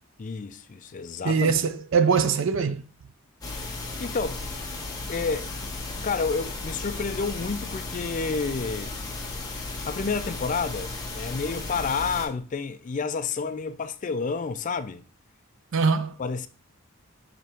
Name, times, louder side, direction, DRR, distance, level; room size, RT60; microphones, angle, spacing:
voice 1, 0.2-1.5 4.0-4.5 5.1-5.5 6.0-9.0 9.9-15.0 16.2-16.5, left 4 dB, 35° left, 0.4 m, -30 dB
voice 2, 1.2-2.9 15.7-16.1, right 5 dB, 60° right, 0.5 m, -22 dB
sound 1, 3.4-12.3, left 3 dB, 15° left, 1.2 m, -35 dB
6.5 x 3.4 x 4.3 m
head